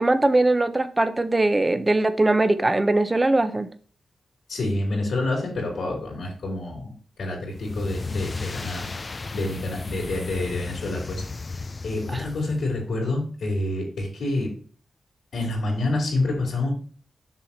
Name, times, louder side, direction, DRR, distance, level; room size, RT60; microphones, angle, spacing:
voice 1, 0.0-3.7 12.1-12.3, right 2 dB, 25° right, 10 dB, 1.1 m, -21 dB
voice 2, 4.5-8.9 9.3-14.5 15.3-16.7, left 2 dB, 80° left, -4 dB, 3.8 m, -28 dB
sound 1, 7.5-12.8, left 3 dB, 40° left, 0.7 m, -34 dB
7.2 x 6.4 x 4.3 m, 0.42 s
cardioid pair, 75°, 0 cm